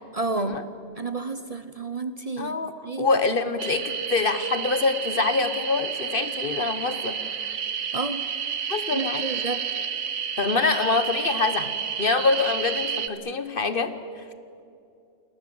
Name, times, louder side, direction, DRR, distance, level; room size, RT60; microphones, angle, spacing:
voice 1, 0.1-0.5 1.0-3.1 7.9-8.2 8.9-9.6, right 3 dB, 35° right, 10 dB, 0.9 m, -31 dB
voice 2, 2.4-7.2 8.7-9.3 10.4-13.9, left 4 dB, 50° left, 11 dB, 1.4 m, -25 dB
sound 1, 3.6-13.1, right 7 dB, 80° right, 1.4 m, -30 dB
28.5 x 20.5 x 7.8 m, 2.6 s
omnidirectional pair, 1.2 m